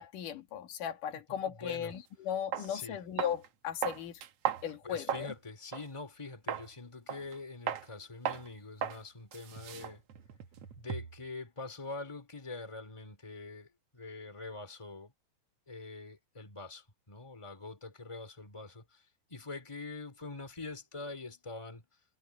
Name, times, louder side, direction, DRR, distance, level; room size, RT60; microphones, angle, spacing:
voice 1, 0.0-4.2 4.6-5.3, left 9 dB, 75° left, 3.6 m, -37 dB
voice 2, 1.1-1.9 2.6-3.0 4.8-10.0 10.8-15.1 15.7-19.0 19.3-21.9, left 3 dB, 10° left, 3.0 m, -44 dB
sound 1, 1.9-2.0 2.5-2.7 3.2-3.5 3.8-5.3 5.7-5.9 6.5-6.7 7.1-7.4 7.7-7.9 8.2-8.5 8.8-9.0 9.3-11.2, right 9 dB, 60° right, 1.9 m, -36 dB
omnidirectional pair, 3.8 m